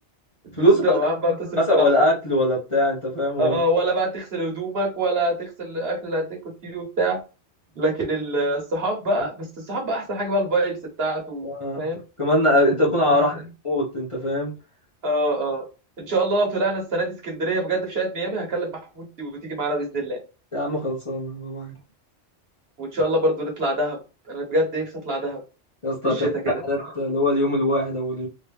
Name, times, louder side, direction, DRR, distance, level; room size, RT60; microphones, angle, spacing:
voice 1, 0.6-1.9 3.4-7.2 7.8-11.5 11.8-12.0 13.0-13.4 15.0-15.6 16.1-20.2 22.8-24.0 24.3-25.4 26.0-26.5 26.8-26.9, right 1 dB, 55° right, 1 dB, 1.4 m, -25 dB
voice 2, 1.6-3.6 11.4-11.9 12.2-13.3 13.6-14.5 20.5-21.7 25.8-28.3, left 1 dB, 30° left, -3 dB, 1.1 m, -22 dB
3.2 x 2.8 x 3.4 m, 0.31 s
omnidirectional pair, 1.2 m